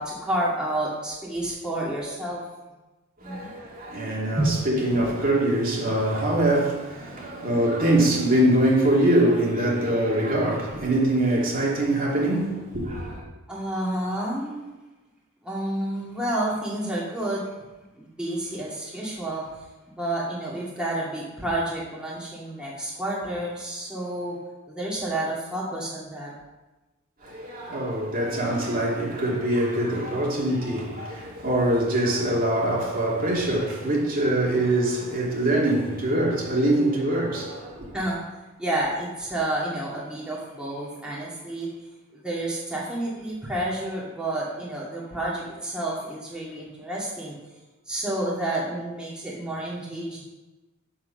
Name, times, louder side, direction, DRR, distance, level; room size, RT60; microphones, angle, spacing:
voice 1, 0.0-2.4 3.2-3.5 4.3-4.6 13.5-14.7 15.4-17.5 17.9-19.4 19.9-24.4 24.7-26.3 36.7-36.8 37.9-38.3 38.6-41.7 42.1-47.4 47.9-50.2, right 1 dB, 5° right, 2.2 m, -30 dB
voice 2, 3.2-13.2 27.2-38.0, right 1 dB, 45° right, 2.3 m, -23 dB
7.6 x 7.4 x 5.7 m
head